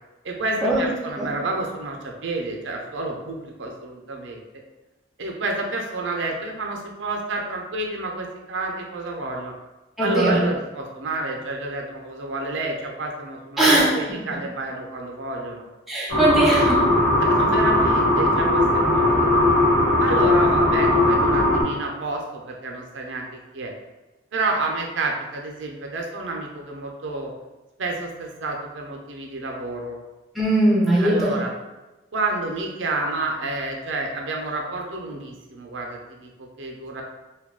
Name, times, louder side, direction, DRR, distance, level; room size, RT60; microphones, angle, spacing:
voice 1, 0.2-4.6 5.2-9.5 10.0-15.6 17.2-19.5 20.0-23.2 23.5-23.7 24.3-27.3 27.8-30.0 31.0-31.5 32.1-37.0, right 2 dB, 80° right, 1 dB, 0.5 m, -29 dB
voice 2, 10.0-10.4 13.6-14.0 15.9-16.8 30.4-31.3, right 1 dB, ahead, -6 dB, 0.5 m, -19 dB
sound 1, 16.1-21.6, left 1 dB, 60° left, 1.2 m, -18 dB
2.2 x 2.2 x 3.6 m, 1.1 s
head